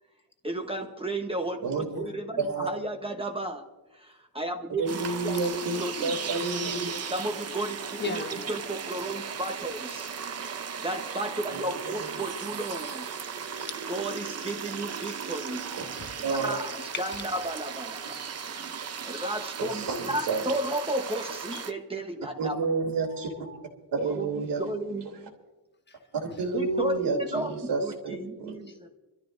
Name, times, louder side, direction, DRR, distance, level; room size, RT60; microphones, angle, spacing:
voice 1, 0.4-3.6 4.0-5.4 5.8-6.1 7.1-7.8 8.7-10.1 10.8-13.1 13.9-15.6 16.4-16.7 17.0-17.1 17.4-18.2 18.5-22.5 23.9-24.3 24.6-25.3 26.5-27.5 27.8-28.9, right 1 dB, 15° right, 1.1 m, -33 dB
voice 2, 1.6-2.0 2.4-2.7 4.8-7.1 11.5-12.1 15.7-15.8 16.2-16.6 19.6-20.5 22.4-23.3 23.9-24.6 26.4-28.5, right 3 dB, 75° right, 3.2 m, -30 dB
sound 1, 4.9-21.7, right 7 dB, 35° right, 0.7 m, -37 dB
voice 3, 8.0-8.8 11.7-11.9 13.4-13.5 16.0-16.1 16.7-17.2 17.6-18.2 23.0-23.6 25.9-26.0 26.3-26.4 28.7-28.8, left 3 dB, 25° left, 1.1 m, -40 dB
27.0 x 13.5 x 2.6 m
wide cardioid pair, 180°, 42 cm